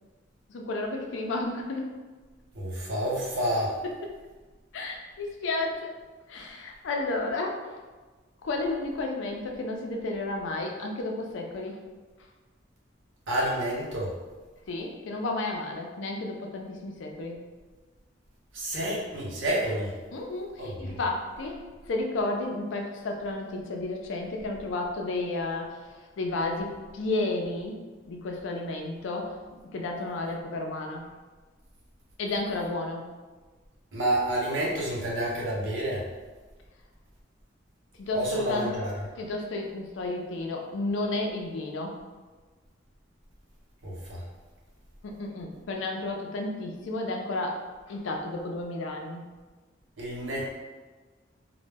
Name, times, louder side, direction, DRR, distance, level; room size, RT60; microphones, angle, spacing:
voice 1, 0.5-1.9 4.7-5.9 6.3-7.6 8.4-11.8 14.7-17.4 20.1-21.6 21.9-25.8 26.2-29.3 29.7-31.1 32.2-33.1 38.0-38.7 39.2-42.0 45.0-49.2, left 2 dB, 70° left, 2 dB, 0.4 m, -32 dB
voice 2, 2.5-3.8 13.3-14.1 18.5-19.9 20.6-21.0 33.9-36.1 38.1-38.9 43.8-44.2 50.0-50.5, right 1 dB, 80° right, -4 dB, 0.7 m, -29 dB
2.1 x 2.0 x 3.3 m, 1.3 s
head